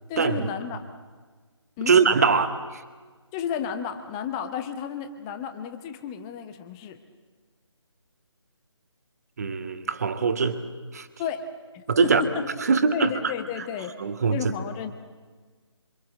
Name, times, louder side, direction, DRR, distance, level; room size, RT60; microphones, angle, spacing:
voice 1, 0.1-0.8 1.8-2.0 2.3-2.4 3.3-7.0 11.2-11.5 11.7-12.5 12.9-13.9 14.3-14.9, left 8 dB, 10° left, 8 dB, 0.8 m, -32 dB
voice 2, 1.9-2.5 9.4-10.6 10.9-11.1 11.9-12.2 12.7-13.1 14.0-14.4, right 5 dB, 35° right, 8 dB, 2.0 m, -21 dB
28.0 x 25.5 x 7.7 m, 1.4 s
figure-of-eight pair, 155°, 15 cm